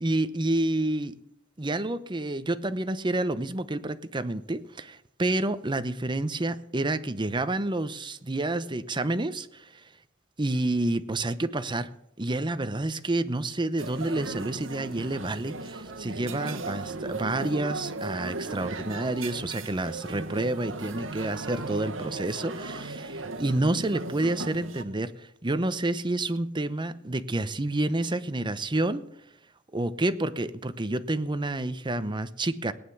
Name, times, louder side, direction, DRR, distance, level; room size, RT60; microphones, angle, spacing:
voice 1, 0.0-1.1 1.6-9.8 10.4-11.9 12.2-29.0 29.7-32.7, right 2 dB, 25° right, 12 dB, 0.8 m, -29 dB
sound 1, 13.8-24.8, right 3 dB, 75° right, 1.4 m, -37 dB
18.0 x 9.8 x 7.2 m, 0.79 s
head